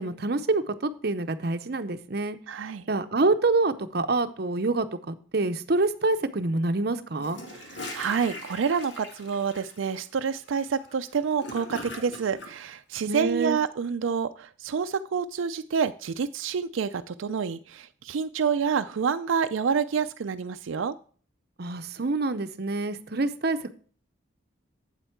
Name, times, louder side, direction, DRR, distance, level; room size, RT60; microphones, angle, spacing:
voice 1, 0.0-2.4 2.9-7.4 13.1-13.6 21.6-23.7, right 3 dB, 55° right, 10 dB, 0.7 m, -26 dB
voice 2, 2.5-2.9 7.9-21.0, right 6 dB, 85° right, 9 dB, 0.4 m, -28 dB
Gurgling / Toilet flush, 7.1-12.5, left 1 dB, 65° left, 2.0 m, -41 dB
8.2 x 8.0 x 4.5 m, 0.44 s
head